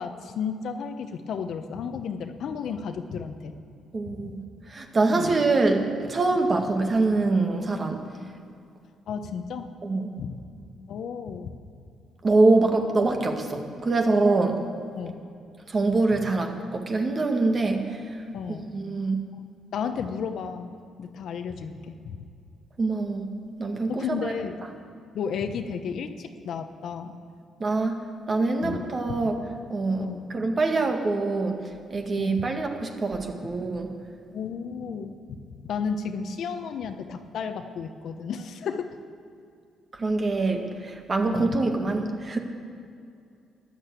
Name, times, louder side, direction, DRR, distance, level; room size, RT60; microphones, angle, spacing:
voice 1, 0.0-3.5 4.1-4.3 5.1-5.4 9.1-9.7 10.2-10.4 10.9-11.5 15.0-15.2 18.3-18.8 19.7-20.7 21.0-22.2 23.9-24.6 25.0-27.2 28.6-28.8 29.2-29.3 30.0-30.2 32.2-32.4 33.4-33.5 34.3-38.9 41.3-41.6, left 6 dB, 70° left, 7 dB, 1.0 m, -33 dB
voice 2, 3.9-4.4 4.7-8.0 9.8-10.1 12.2-14.6 15.7-17.8 18.7-19.2 22.8-23.2 23.6-24.3 27.6-29.4 29.7-30.1 30.3-31.6 31.9-33.9 40.0-42.4, right 3 dB, 35° right, 4 dB, 1.9 m, -24 dB
13.0 x 10.5 x 8.3 m, 2.5 s
cardioid pair, 90°, 0 cm